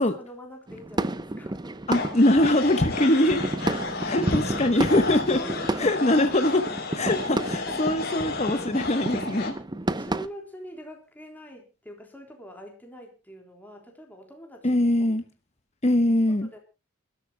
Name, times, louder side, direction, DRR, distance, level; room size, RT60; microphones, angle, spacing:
voice 1, 0.0-1.7 4.5-4.7 5.4-6.9 7.1-8.3 9.3-9.5 9.9-15.1 16.3-16.6, equal, 10° left, 3.7 m, -44 dB
sound 1, 0.7-10.3, right 2 dB, 20° right, 0.7 m, -31 dB
sound 2, 1.9-9.5, left 4 dB, 50° left, 3.4 m, -33 dB
voice 2, 1.9-3.4 4.1-5.4 5.8-6.6 7.0-9.5 14.6-15.2 15.8-16.5, left 1 dB, 35° left, 1.1 m, -22 dB
28.5 x 13.0 x 2.2 m
head